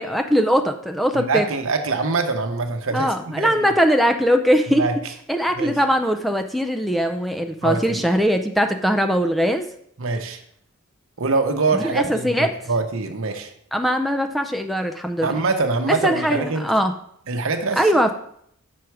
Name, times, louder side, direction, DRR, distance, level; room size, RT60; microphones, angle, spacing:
voice 1, 0.0-1.4 2.9-4.8 5.3-9.7 11.7-12.5 13.7-15.3 16.0-16.9 17.8-18.1, equal, ahead, 5 dB, 0.4 m, -20 dB
voice 2, 1.1-3.7 4.7-5.1 5.6-5.7 7.6-8.0 10.0-10.4 11.2-13.5 15.2-16.7 17.3-18.1, right 3 dB, 65° right, 6 dB, 0.9 m, -24 dB
6.2 x 5.9 x 4.6 m, 0.68 s
head